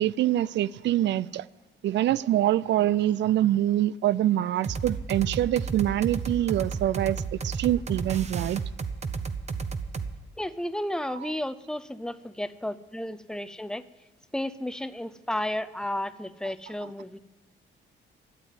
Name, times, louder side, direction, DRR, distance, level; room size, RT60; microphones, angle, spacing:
voice 1, 0.0-1.5 1.8-8.6 11.2-11.3, right 13 dB, 65° right, 0.4 m, -25 dB
sound 1, 4.6-10.1, right 5 dB, 35° right, 0.9 m, -32 dB
voice 2, 10.4-13.8 14.3-17.2, left 1 dB, 5° left, 0.6 m, -33 dB
12.5 x 8.1 x 9.3 m
cardioid pair, 90°, 20 cm